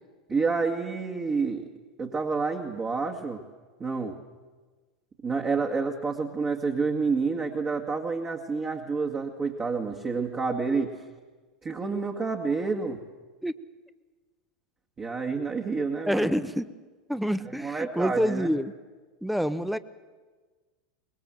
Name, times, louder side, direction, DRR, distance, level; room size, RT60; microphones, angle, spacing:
voice 1, 0.3-1.7 2.0-3.4 3.8-4.1 5.2-11.0 11.6-13.0 15.0-16.3 17.5-18.5, right 4 dB, 25° right, 1 dB, 2.1 m, -29 dB
voice 2, 16.1-16.7 17.1-18.7 19.2-19.8, equal, ahead, 14 dB, 1.0 m, -27 dB
24.0 x 21.0 x 7.8 m, 1.4 s
figure-of-eight pair, 85°, 4 cm